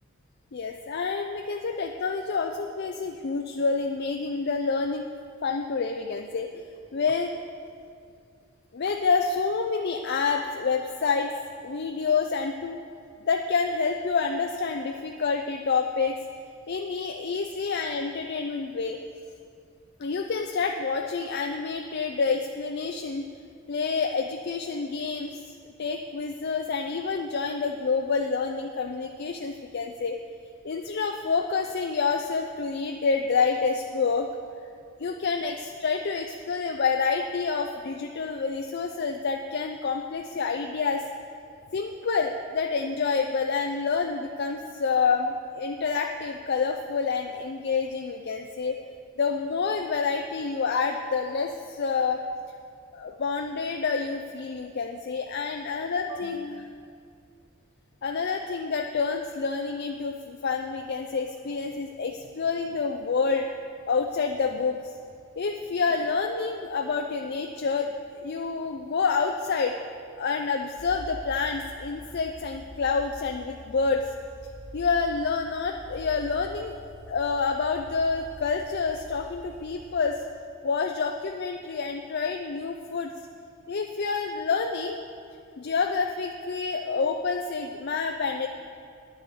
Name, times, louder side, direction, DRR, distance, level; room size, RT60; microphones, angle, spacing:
voice 1, 0.5-5.1 5.4-6.5 6.9-7.3 8.7-11.3 11.6-12.8 13.2-16.2 16.7-19.0 20.0-23.3 23.7-30.2 30.6-34.3 35.0-41.1 41.7-48.8 49.2-52.3 52.9-56.9 58.0-63.5 63.9-64.9 65.4-69.8 70.2-74.1 74.7-76.7 77.1-80.2 80.6-83.1 83.7-85.0 85.6-88.5, left 5 dB, 50° left, 4 dB, 0.5 m, -28 dB
sound 1, 70.8-79.9, left 1 dB, 60° right, 2.4 m, -46 dB
9.7 x 7.6 x 7.6 m, 2.3 s
head